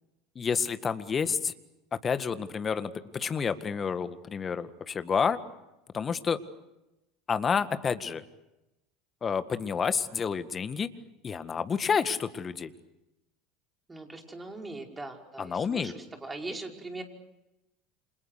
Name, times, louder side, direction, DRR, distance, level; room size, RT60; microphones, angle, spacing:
voice 1, 0.3-1.5 2.0-5.4 5.9-6.4 7.3-8.2 9.2-10.9 11.2-12.7 15.4-15.9, left 6 dB, 30° left, 12 dB, 1.8 m, -29 dB
voice 2, 13.9-17.0, right 2 dB, 15° right, 2 dB, 5.4 m, -40 dB
29.5 x 27.0 x 6.7 m, 0.94 s
hypercardioid pair, 75°, 0 cm